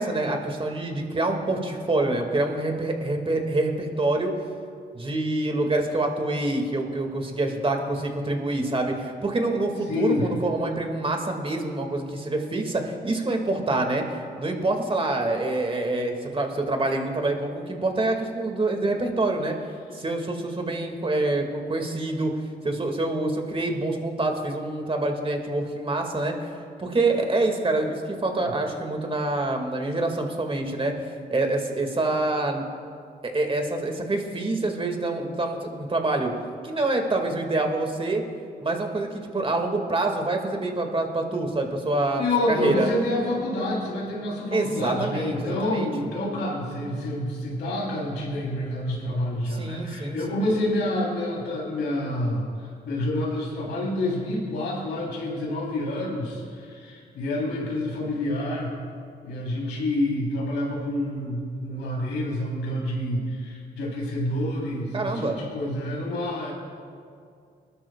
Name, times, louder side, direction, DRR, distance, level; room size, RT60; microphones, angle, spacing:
voice 1, 0.0-4.3 4.9-14.0 14.4-19.5 19.9-22.3 22.6-26.3 26.8-30.9 31.3-32.7 33.2-36.3 36.6-38.2 38.6-42.2 42.5-42.9 44.5-46.1 49.5-50.4 64.9-65.4, right 2 dB, 30° right, 3 dB, 2.3 m, -26 dB
voice 2, 9.9-10.3 42.2-58.7 59.2-66.5, left 1 dB, 80° left, -4 dB, 3.8 m, -28 dB
21.5 x 12.5 x 2.5 m, 2.3 s
supercardioid pair, 55°, 18 cm